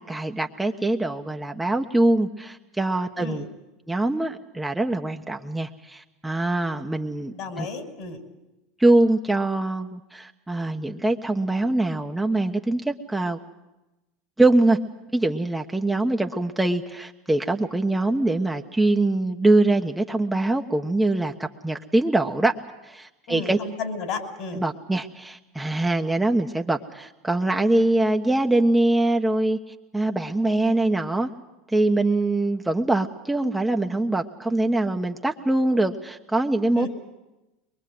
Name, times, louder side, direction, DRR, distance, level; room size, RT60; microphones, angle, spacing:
voice 1, 0.0-3.4 3.9-7.7 8.8-13.4 14.4-14.8 15.1-22.5 22.8-23.6 24.5-29.6 29.9-31.3 31.7-36.9, right 2 dB, 5° right, 3 dB, 1.2 m, -23 dB
voice 2, 7.1-8.2 23.3-24.6 36.8-36.9, left 4 dB, 55° left, 5 dB, 5.5 m, -33 dB
23.0 x 22.5 x 7.9 m, 1.0 s
hypercardioid pair, 95°, 0 cm